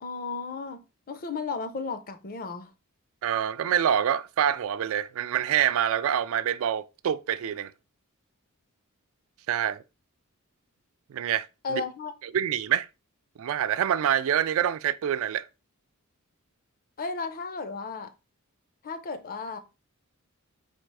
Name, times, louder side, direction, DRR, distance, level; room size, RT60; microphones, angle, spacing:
voice 1, 0.0-2.7 11.6-12.1 17.0-18.1 18.8-19.6, left 4 dB, 45° left, 0.6 m, -34 dB
voice 2, 3.2-7.7 9.5-9.8 11.1-11.8 12.2-12.9 13.4-15.5, right 9 dB, 70° right, 0.3 m, -26 dB
4.3 x 2.4 x 4.7 m
head